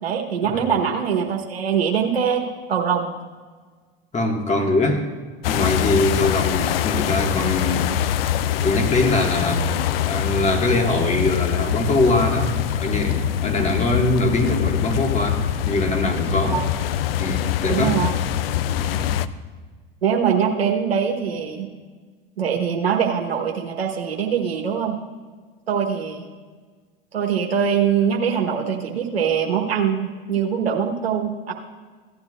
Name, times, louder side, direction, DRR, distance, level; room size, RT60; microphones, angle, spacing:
voice 1, 0.0-2.4 2.7-3.1 16.4-16.6 17.7-18.1 20.0-21.7 22.4-25.0 25.7-26.2 27.1-31.5, right 7 dB, 90° right, 0 dB, 1.2 m, -22 dB
voice 2, 4.1-5.1 5.5-8.2 8.6-9.7 10.1-16.6 17.2-18.0 18.8-19.2, left 2 dB, 25° left, 2 dB, 1.9 m, -22 dB
sound 1, 5.4-19.3, left 11 dB, 75° left, 0.5 m, -24 dB
16.0 x 10.5 x 2.5 m, 1.5 s
hypercardioid pair, 90°, 30 cm